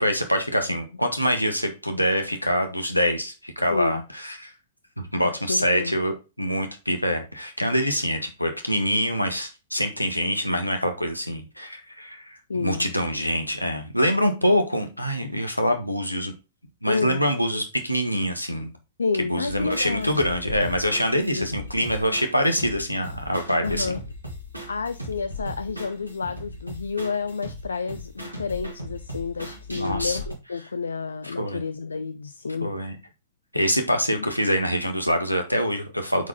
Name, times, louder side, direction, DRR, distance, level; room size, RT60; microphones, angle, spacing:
voice 1, 0.0-4.5 5.0-6.1 6.4-16.3 16.8-18.7 19.3-24.0 29.7-30.2 31.4-31.6 32.6-33.0 33.5-36.3, equal, 90° left, 1.6 m, -25 dB
voice 2, 3.7-4.0 5.2-6.0 12.5-12.9 15.2-15.3 16.9-17.2 19.0-20.2 21.3-21.6 23.6-24.0 24.7-32.7 34.1-34.3, left 4 dB, 70° left, 0.5 m, -30 dB
sound 1, 19.5-30.4, left 1 dB, 85° right, 2.6 m, -38 dB
8.0 x 4.8 x 4.0 m
figure-of-eight pair, 105°, 0 cm